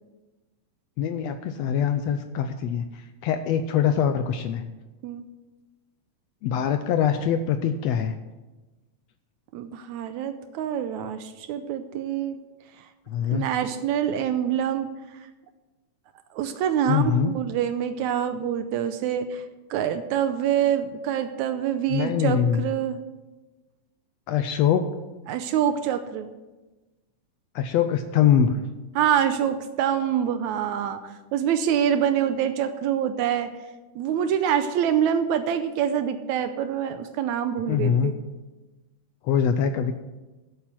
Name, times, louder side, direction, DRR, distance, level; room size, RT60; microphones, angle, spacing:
voice 1, 1.0-4.6 6.4-8.1 13.1-13.4 16.9-17.4 21.9-22.6 24.3-24.9 27.5-28.6 37.7-38.1 39.2-39.9, left 8 dB, 80° left, 9 dB, 1.6 m, -23 dB
voice 2, 9.5-12.4 13.3-14.9 16.4-19.4 19.7-23.0 25.3-26.3 29.0-33.5 34.0-38.1, right 9 dB, 80° right, 10 dB, 2.0 m, -25 dB
12.0 x 8.2 x 6.2 m, 1.1 s
omnidirectional pair, 3.4 m